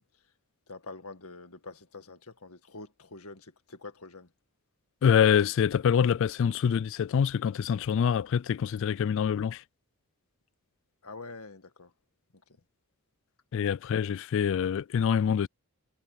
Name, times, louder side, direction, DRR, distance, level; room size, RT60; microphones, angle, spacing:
voice 1, 0.7-4.3 11.0-11.9 12.5-12.6, left 3 dB, 85° left, 2.0 m, -46 dB
voice 2, 5.0-9.6 13.5-15.5, left 7 dB, 60° left, 0.3 m, -25 dB
head